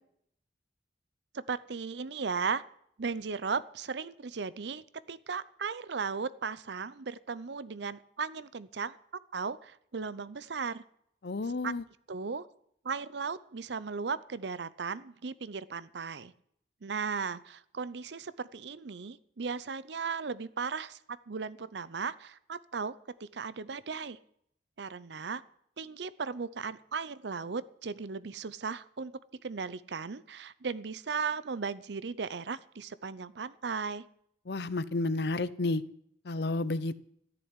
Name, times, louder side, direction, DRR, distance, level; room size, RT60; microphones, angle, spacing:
voice 1, 1.3-2.6 3.0-9.0 9.3-10.8 11.6-11.7 12.1-12.5 12.8-16.3 16.8-24.2 24.8-25.4 25.8-29.1 29.4-34.0, right 5 dB, 70° right, 17 dB, 0.6 m, -36 dB
voice 2, 11.2-11.8 34.5-35.8 36.2-37.0, left 2 dB, 60° left, 17 dB, 0.6 m, -31 dB
13.5 x 7.0 x 9.6 m, 0.70 s
head